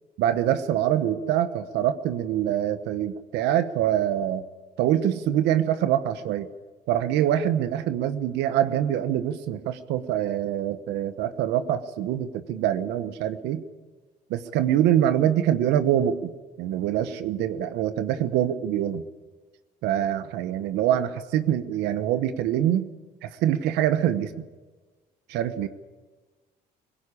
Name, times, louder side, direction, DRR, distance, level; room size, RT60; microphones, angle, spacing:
voice 1, 0.2-4.4 4.8-6.5 6.9-13.6 14.3-16.3 16.6-19.0 19.8-22.9 23.2-24.3 25.3-25.7, right 11 dB, 90° right, 12 dB, 1.1 m, -24 dB
21.5 x 18.0 x 9.9 m, 1.3 s
cardioid pair, 110°, 17 cm